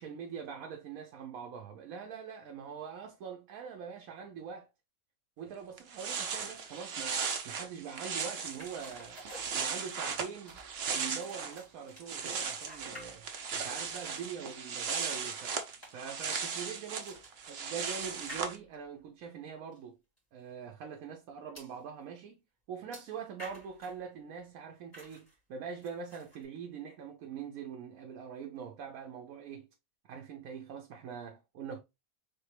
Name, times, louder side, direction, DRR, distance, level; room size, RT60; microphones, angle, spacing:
voice 1, 0.0-4.7 5.4-9.2 9.5-10.6 10.9-15.5 15.9-20.0 20.3-22.4 22.7-29.7 30.1-31.8, right 6 dB, 80° right, 1.1 m, -43 dB
sound 1, 5.5-5.6 5.8-11.6 11.9-18.6, right 6 dB, 55° right, 0.9 m, -37 dB
sound 2, 8.5-10.1 10.5-13.5 13.8-19.0 19.7-19.8 20.2-20.3 21.6-21.8 22.9-24.0 24.9-25.4 25.8-26.4, equal, 15° left, 2.7 m, -53 dB
4.3 x 3.4 x 3.2 m
omnidirectional pair, 1.5 m